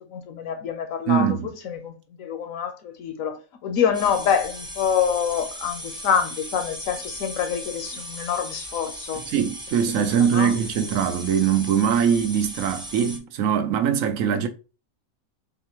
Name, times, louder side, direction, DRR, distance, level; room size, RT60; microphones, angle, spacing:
voice 1, 0.1-9.2 10.0-10.5 14.4-14.5, left 7 dB, 75° left, 1.1 m, -26 dB
voice 2, 1.1-1.5 9.3-14.5, right 8 dB, 75° right, 1.0 m, -22 dB
sound 1, 3.9-13.2, equal, 5° right, 0.4 m, -37 dB
4.1 x 3.4 x 3.0 m
omnidirectional pair, 1.5 m